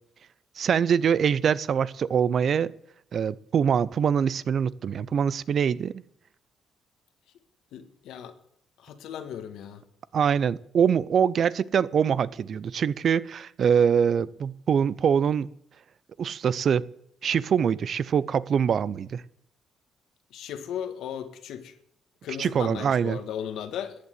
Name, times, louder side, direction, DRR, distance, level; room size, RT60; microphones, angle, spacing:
voice 1, 0.6-2.7 3.1-6.0 10.1-15.5 16.2-16.9 17.2-19.2 22.4-23.2, right 7 dB, 55° right, 0.5 m, -24 dB
voice 2, 7.7-8.3 8.8-9.8 20.3-21.7 22.2-23.9, left 9 dB, 80° left, 1.6 m, -36 dB
14.5 x 8.5 x 8.1 m
cardioid pair, 90°, 0 cm